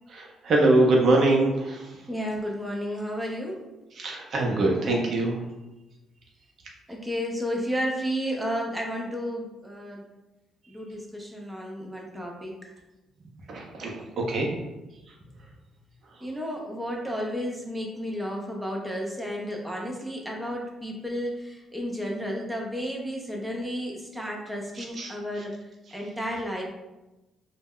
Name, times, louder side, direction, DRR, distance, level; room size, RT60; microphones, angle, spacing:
voice 1, 0.1-1.8 4.0-5.4 13.5-13.9 14.3-14.5 24.8-25.1, right 2 dB, 60° right, -1 dB, 0.5 m, -23 dB
voice 2, 2.1-3.6 6.9-10.1 10.7-12.7 14.4-14.5 16.2-25.5 25.9-26.6, equal, 5° right, -1 dB, 0.5 m, -32 dB
2.1 x 2.0 x 3.6 m, 1.0 s
cardioid pair, 90°, 0 cm